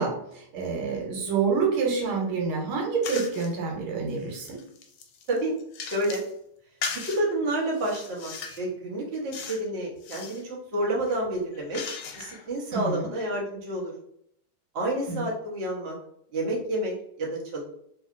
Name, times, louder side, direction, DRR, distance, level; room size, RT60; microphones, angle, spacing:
voice 1, 0.0-4.6 12.7-13.1 15.1-15.3, right 5 dB, 85° right, -1 dB, 1.7 m, -27 dB
sound 1, 3.0-3.5 4.1-6.3 6.8-7.2 7.7-8.7 9.3-9.7 10.0-10.4 11.0-12.5, left 5 dB, 90° left, 1.5 m, -38 dB
voice 2, 5.8-6.2 7.0-11.8 12.2-13.9 14.7-15.9 16.3-17.6, right 1 dB, 50° right, -4 dB, 0.7 m, -29 dB
3.1 x 2.8 x 2.4 m, 0.72 s
omnidirectional pair, 2.3 m